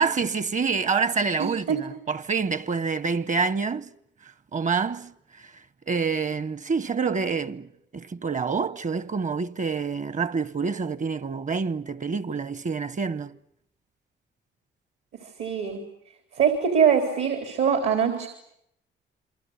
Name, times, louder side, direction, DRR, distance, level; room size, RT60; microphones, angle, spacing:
voice 1, 0.0-3.9 4.5-5.5 5.9-13.3, right 5 dB, 40° right, 1.0 m, -27 dB
voice 2, 1.4-1.8 15.2-15.8 16.3-18.3, right 7 dB, 75° right, 3.9 m, -23 dB
28.0 x 24.5 x 8.2 m
cardioid pair, 90°, 20 cm